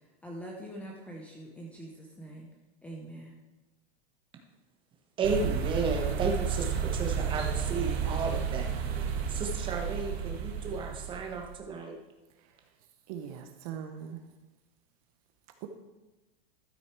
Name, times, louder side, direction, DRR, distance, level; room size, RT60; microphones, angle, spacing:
voice 1, 0.2-2.5 2.8-3.4, right 1 dB, 5° left, -1 dB, 0.6 m, -44 dB
voice 2, 5.2-8.7 9.0-12.0, right 4 dB, 15° right, 2 dB, 1.1 m, -33 dB
sound 1, 5.2-11.5, right 7 dB, 90° right, 1.6 m, -32 dB
voice 3, 12.3-14.3 15.6-15.7, right 9 dB, 35° right, 6 dB, 0.7 m, -42 dB
12.5 x 6.3 x 4.5 m, 1.1 s
supercardioid pair, 165°, 30 cm